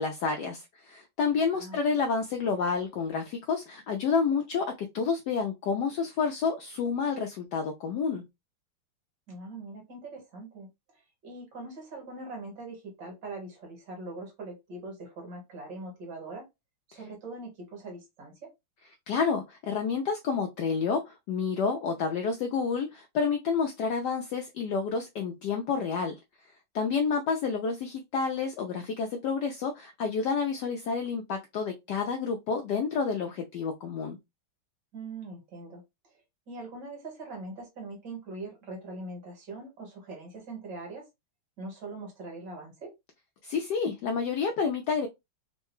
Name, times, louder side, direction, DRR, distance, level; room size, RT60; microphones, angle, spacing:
voice 1, 0.0-8.3 19.1-26.2 26.7-34.2 43.4-45.1, left 5 dB, 75° left, 0.9 m, -29 dB
voice 2, 9.3-16.5 16.9-18.5 34.9-35.8 36.5-41.1 41.6-42.9, right 2 dB, 60° right, 1.9 m, -42 dB
3.8 x 2.2 x 3.0 m
omnidirectional pair, 2.3 m